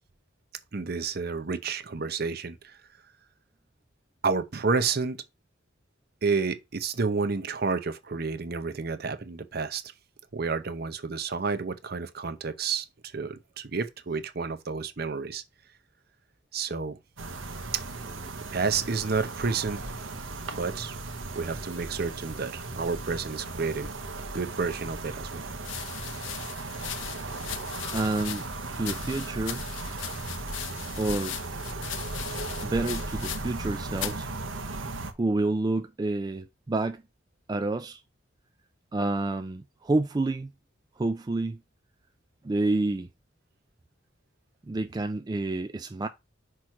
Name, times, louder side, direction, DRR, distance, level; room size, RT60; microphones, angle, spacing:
voice 1, 0.7-2.8 4.2-5.2 6.2-9.8 10.3-15.4 16.5-17.0 17.7-17.8 18.4-19.8 20.5-20.9 21.4-23.9 24.3-25.5, right 4 dB, 50° right, 0.7 m, -30 dB
sound 1, 17.2-35.1, right 2 dB, 85° right, 1.0 m, -37 dB
sound 2, 25.6-33.7 33.9-34.3 35.0-35.4, left 11 dB, 75° left, 0.5 m, -39 dB
voice 2, 27.9-28.5 28.8-29.6 31.0-31.4 32.6-34.3 35.2-37.0 37.5-38.0 38.9-40.5 41.0-41.6 42.4-43.1 44.7-46.1, right 2 dB, 20° right, 0.3 m, -28 dB
6.1 x 3.1 x 5.8 m
head